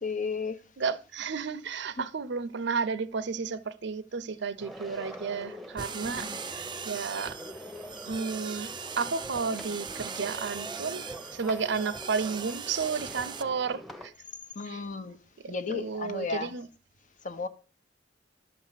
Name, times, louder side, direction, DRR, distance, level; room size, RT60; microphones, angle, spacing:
voice 1, 0.0-0.6 2.0-2.1 6.2-6.4 14.5-15.2 15.5-16.5 17.2-17.5, left 4 dB, 45° left, 1.0 m, -34 dB
voice 2, 0.8-7.4 8.0-11.0 11.3-14.1 14.6-14.8 15.4-16.7, right 5 dB, 65° right, 0.6 m, -32 dB
sound 1, 4.6-14.1, equal, ahead, 1.0 m, -44 dB
sound 2, 5.8-13.4, right 6 dB, 25° right, 0.6 m, -40 dB
11.5 x 4.6 x 7.4 m
head